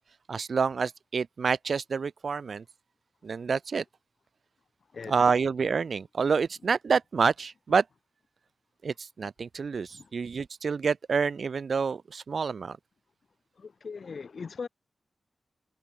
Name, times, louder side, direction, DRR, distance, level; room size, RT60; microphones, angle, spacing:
voice 1, 0.3-2.6 3.2-3.8 5.1-7.8 8.8-12.8, right 5 dB, 65° right, 1.5 m, -28 dB
voice 2, 13.6-14.7, left 5 dB, 60° left, 6.6 m, -39 dB
wide cardioid pair, 120°, 0 cm